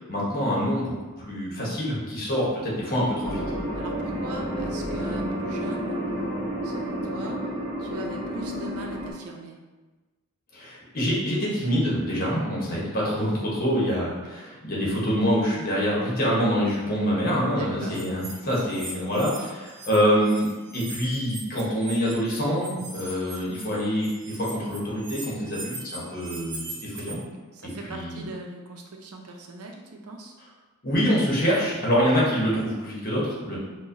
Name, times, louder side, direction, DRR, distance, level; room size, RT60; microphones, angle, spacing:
voice 1, 0.1-3.4 10.5-27.2 27.6-28.2 30.8-33.6, equal, 40° left, -5 dB, 1.0 m, -25 dB
sound 1, 3.2-9.1, equal, 15° right, 1.0 m, -30 dB
voice 2, 3.7-6.0 6.6-7.4 7.8-9.6 12.6-12.9 17.5-18.0 25.4-25.7 27.5-30.3, right 2 dB, 85° right, 2 dB, 0.5 m, -40 dB
sound 2, 17.9-20.0 20.2-27.1, right 2 dB, 55° right, 0.8 m, -40 dB
4.6 x 2.3 x 2.7 m, 1.2 s
head